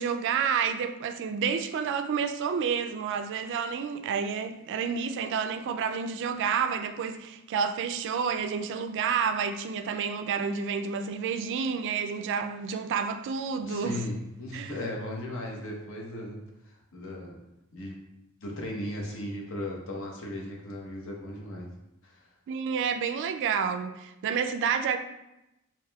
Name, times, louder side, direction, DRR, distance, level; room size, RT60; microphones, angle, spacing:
voice 1, 0.0-14.0 14.5-14.7 22.5-25.0, right 6 dB, 60° right, 0.3 m, -29 dB
voice 2, 13.7-16.4 16.9-17.4 17.7-18.0 18.4-21.7 22.0-22.2, left 1 dB, 65° left, 0.8 m, -36 dB
4.9 x 3.0 x 2.3 m
head